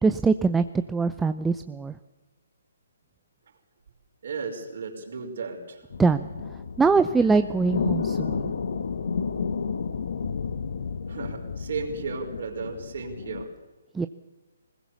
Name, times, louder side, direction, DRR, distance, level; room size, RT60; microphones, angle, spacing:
voice 1, 0.0-1.9 6.0-6.3 6.8-8.5 13.9-14.1, right 4 dB, 10° right, 9 dB, 0.6 m, -23 dB
voice 2, 4.2-5.8 8.2-8.3 11.1-13.5, right 4 dB, 60° right, 2 dB, 5.3 m, -34 dB
sound 1, 5.9-13.4, left 5 dB, 65° left, 1.4 m, -31 dB
21.5 x 20.0 x 7.2 m, 1.2 s
figure-of-eight pair, 135°, 0 cm